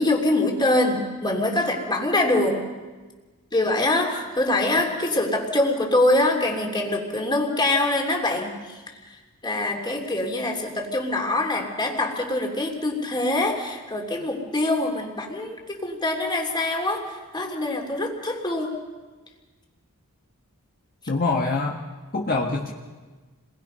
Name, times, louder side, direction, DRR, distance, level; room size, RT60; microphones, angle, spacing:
voice 1, 0.0-2.6 3.5-8.8 9.1-18.8, left 2 dB, 20° left, 1 dB, 3.2 m, -24 dB
voice 2, 21.1-21.8 22.1-22.7, left 3 dB, 45° left, -2 dB, 1.6 m, -24 dB
30.0 x 21.5 x 5.7 m, 1.3 s
head